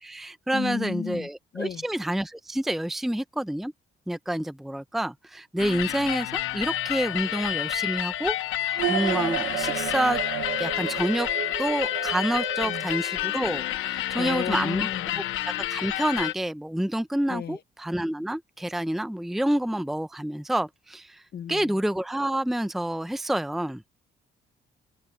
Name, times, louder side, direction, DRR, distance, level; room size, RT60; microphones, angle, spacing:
voice 1, 0.0-3.7 4.1-10.2 10.6-11.3 11.6-14.9 15.6-21.2 21.5-23.8, right 1 dB, ahead, 0.7 m, -28 dB
voice 2, 0.5-1.3 1.5-1.8 12.6-12.9 14.1-15.2 17.3-17.6 21.3-21.7, left 8 dB, 55° left, 1.5 m, -33 dB
sound 1, 5.6-16.3, left 14 dB, 90° left, 1.1 m, -29 dB
sound 2, 8.8-13.6, right 13 dB, 80° right, 1.1 m, -32 dB
open air
cardioid pair, 90°, 20 cm